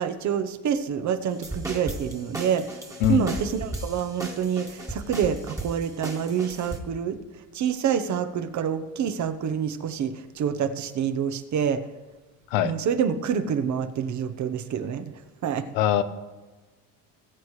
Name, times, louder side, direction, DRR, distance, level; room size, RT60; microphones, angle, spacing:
voice 1, 0.0-2.7 3.1-7.2 7.5-11.8 12.6-15.1 15.4-15.6, right 8 dB, 45° right, 10 dB, 1.0 m, -27 dB
sound 1, 1.3-6.8, right 2 dB, 10° right, 1.6 m, -35 dB
voice 2, 3.0-3.3 12.5-12.7 15.7-16.0, left 10 dB, 90° left, 11 dB, 0.9 m, -21 dB
19.5 x 8.1 x 3.2 m, 1.2 s
cardioid pair, 110°, 40 cm